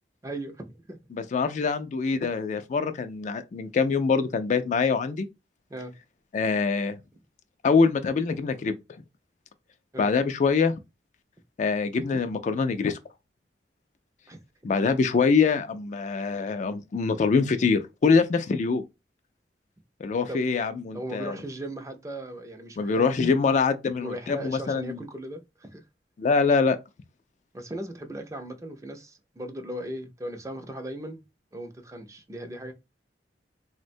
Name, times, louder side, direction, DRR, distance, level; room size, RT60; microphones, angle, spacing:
voice 1, 0.2-1.0 5.7-5.9 9.9-10.1 14.3-14.4 20.3-20.4 20.9-23.1 24.0-25.8 27.5-31.2 31.5-32.7, right 1 dB, 20° right, 0.5 m, -37 dB
voice 2, 1.1-5.3 6.3-7.0 7.6-8.8 10.0-10.7 11.6-13.0 14.6-18.8 20.0-21.4 22.8-25.0 26.2-26.8, left 5 dB, 45° left, 0.3 m, -24 dB
3.4 x 2.1 x 2.5 m
head